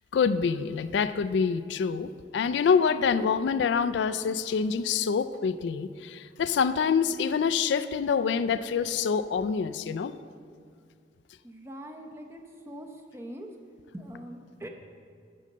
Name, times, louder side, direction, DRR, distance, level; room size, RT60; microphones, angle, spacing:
voice 1, 0.1-10.1, left 6 dB, 75° left, 13 dB, 0.3 m, -26 dB
voice 2, 11.4-13.5 13.9-14.7, equal, 15° right, 3 dB, 0.7 m, -42 dB
8.6 x 6.4 x 6.6 m, 2.2 s
head